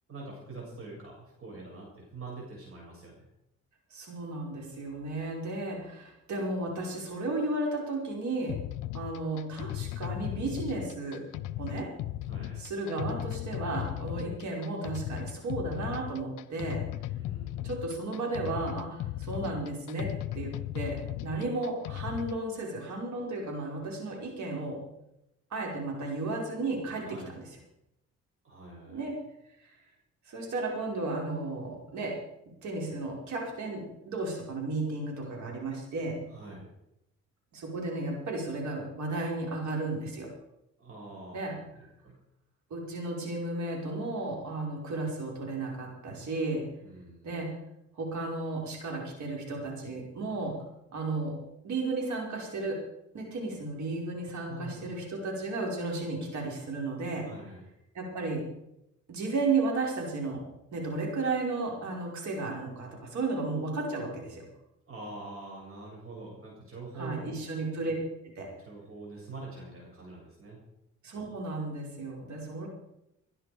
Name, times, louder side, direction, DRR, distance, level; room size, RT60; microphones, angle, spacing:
voice 1, 0.1-3.3 12.3-12.6 17.1-17.7 27.0-27.3 28.4-29.0 36.3-36.7 40.8-42.2 46.8-47.3 54.5-54.9 57.2-57.6 64.9-67.3 68.7-70.6, right 3 dB, 45° right, -3 dB, 7.7 m, -44 dB
voice 2, 3.9-8.6 8.9-11.3 11.6-11.9 12.6-16.8 17.6-24.8 25.5-27.5 28.9-29.2 29.6-29.7 30.3-32.2 32.6-36.2 37.5-40.3 41.3-41.6 42.7-46.6 47.2-47.6 48.0-50.6 50.9-51.4 51.6-52.8 53.1-57.2 58.0-58.4 59.1-60.4 60.7-64.5 67.0-68.0 68.4-68.5 71.0-72.7, right 3 dB, 70° right, 0 dB, 5.4 m, -34 dB
sound 1, 8.5-22.4, left 14 dB, 85° left, 0.6 m, -37 dB
21.0 x 11.0 x 5.2 m, 0.85 s
cardioid pair, 90°, 30 cm